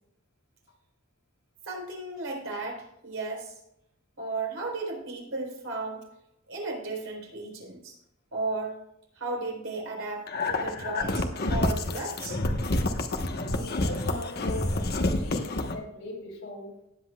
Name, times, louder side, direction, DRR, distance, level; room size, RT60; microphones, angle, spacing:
voice 1, 1.6-3.5 4.2-6.0 6.5-7.9 8.3-8.8 9.1-12.4, right 3 dB, 70° right, 0 dB, 4.2 m, -34 dB
sound 1, 10.3-15.8, left 2 dB, 50° left, 1.1 m, -28 dB
voice 2, 13.5-16.8, left 2 dB, 75° left, -1 dB, 4.1 m, -39 dB
18.5 x 7.9 x 2.3 m, 0.83 s
head